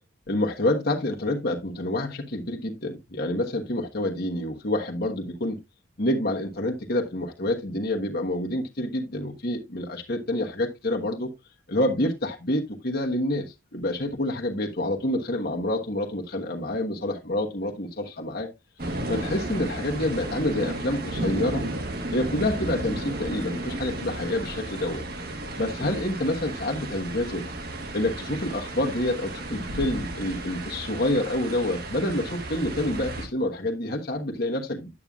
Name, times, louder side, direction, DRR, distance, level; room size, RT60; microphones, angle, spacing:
voice 1, 0.3-5.6 6.0-11.3 11.7-18.5 19.1-21.7 22.1-25.0 25.6-27.5 27.9-34.9, left 1 dB, 50° left, 1.2 m, -28 dB
sound 1, 18.8-33.3, right 1 dB, 50° right, 1.5 m, -33 dB
9.8 x 8.8 x 2.4 m
head